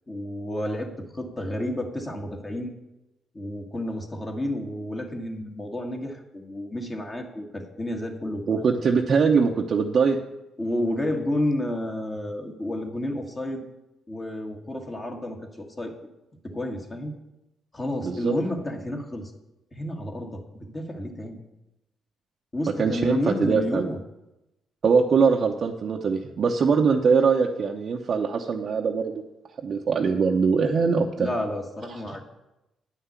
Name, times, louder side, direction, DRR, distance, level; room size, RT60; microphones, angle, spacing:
voice 1, 0.1-2.7 3.3-8.7 10.6-13.6 14.1-15.9 16.4-17.1 17.7-19.3 19.7-21.4 22.5-24.0 31.2-32.2, left 1 dB, 25° left, 2 dB, 1.7 m, -31 dB
voice 2, 8.5-10.2 18.0-18.3 22.8-23.9 24.8-29.2 29.6-31.3, right 5 dB, 50° right, 0 dB, 0.8 m, -22 dB
9.3 x 5.8 x 8.2 m, 0.93 s
cardioid pair, 90°, 0 cm